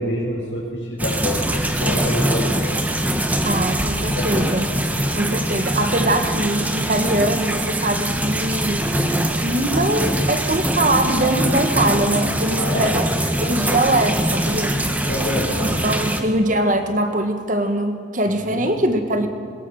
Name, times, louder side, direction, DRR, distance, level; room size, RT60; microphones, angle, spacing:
voice 1, 0.0-2.8 4.1-4.6 12.5-12.9 15.1-15.7 16.0-16.2 18.5-19.0, left 1 dB, 80° left, -7 dB, 5.2 m, -27 dB
sound 1, 1.0-16.2, right 1 dB, 10° right, 1.2 m, -23 dB
voice 2, 3.4-4.7 5.1-8.9 9.4-13.0 13.4-14.8 15.8-19.3, right 1 dB, 40° right, 6 dB, 1.7 m, -22 dB
22.0 x 20.5 x 6.6 m, 2.3 s
head